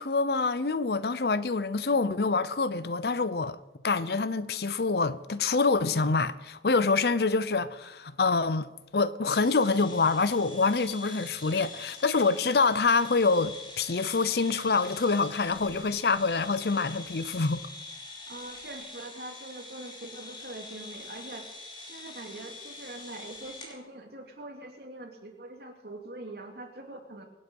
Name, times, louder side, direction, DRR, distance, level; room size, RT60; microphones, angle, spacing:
voice 1, 0.0-3.6 3.8-17.6, left 4 dB, 65° left, 0.7 m, -26 dB
sound 1, 9.3-23.8, left 3 dB, 25° left, 3.1 m, -45 dB
voice 2, 18.3-27.2, right 2 dB, 65° right, 2.6 m, -43 dB
24.5 x 8.9 x 5.4 m
head